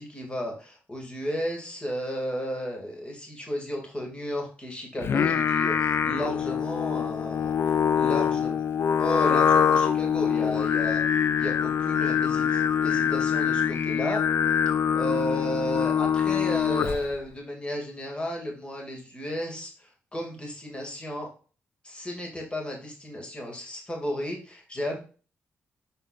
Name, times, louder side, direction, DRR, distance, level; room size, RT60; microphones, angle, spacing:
voice 1, 0.0-7.5 7.9-8.5 9.0-14.2 14.6-21.3 21.8-25.0, equal, 25° left, 0 dB, 2.6 m, -33 dB
Singing, 5.0-17.2, left 8 dB, 60° left, 0.5 m, -24 dB
6.7 x 5.6 x 2.6 m, 0.36 s
cardioid pair, 70°, 5 cm